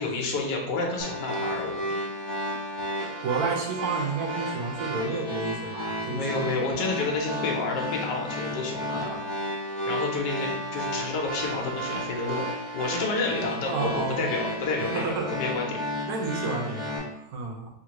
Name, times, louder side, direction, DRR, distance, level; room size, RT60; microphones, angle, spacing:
voice 1, 0.0-1.9 6.1-9.2 9.9-12.4 12.7-15.8, left 3 dB, 70° left, 0 dB, 1.3 m, -30 dB
sound 1, 1.0-17.0, equal, 25° left, 1.4 m, -33 dB
voice 2, 3.2-6.2 9.8-9.9 13.6-14.3 14.8-15.3 16.1-17.7, right 4 dB, 70° right, 1 dB, 1.0 m, -31 dB
3.5 x 2.4 x 2.9 m, 0.83 s
omnidirectional pair, 1.9 m